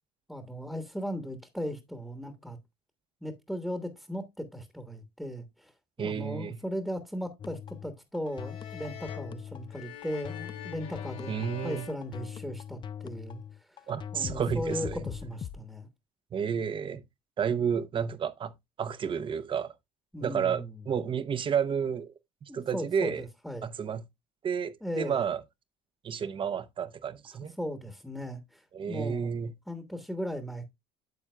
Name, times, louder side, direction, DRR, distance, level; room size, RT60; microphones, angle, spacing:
voice 1, 0.3-2.6 3.2-5.7 6.0-15.9 20.1-20.8 22.5-23.7 24.8-25.2 27.6-29.3 29.7-30.7, equal, ahead, 1.2 m, -37 dB
voice 2, 6.0-6.6 11.3-11.9 13.9-15.0 16.3-17.0 17.4-18.5 18.8-19.7 20.2-22.1 22.4-23.2 23.6-24.0 24.4-25.4 26.0-27.5 28.7-29.5, right 7 dB, 35° right, 0.8 m, -31 dB
sound 1, 7.4-15.6, left 8 dB, 35° left, 0.4 m, -41 dB
sound 2, 8.3-12.9, left 9 dB, 75° left, 3.3 m, -46 dB
9.4 x 7.1 x 2.2 m
supercardioid pair, 80°, 14 cm